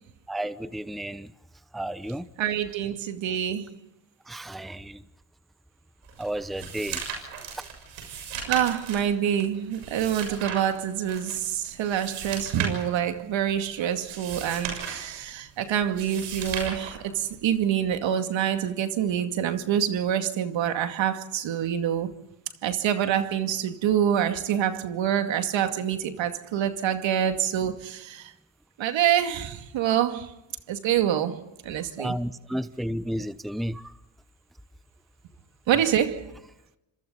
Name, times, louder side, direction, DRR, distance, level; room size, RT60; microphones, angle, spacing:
voice 1, 0.3-1.3 1.7-2.3 4.3-5.0 6.2-7.3 7.5-7.6 32.0-33.9, right 1 dB, ahead, 0.9 m, -32 dB
voice 2, 2.4-3.8 8.5-22.1 22.6-28.3 28.8-30.3 30.7-32.2 35.7-36.3, right 9 dB, 65° right, 2.4 m, -26 dB
sound 1, 6.0-17.6, right 6 dB, 90° right, 6.9 m, -37 dB
30.0 x 26.0 x 4.0 m
supercardioid pair, 80°, 48 cm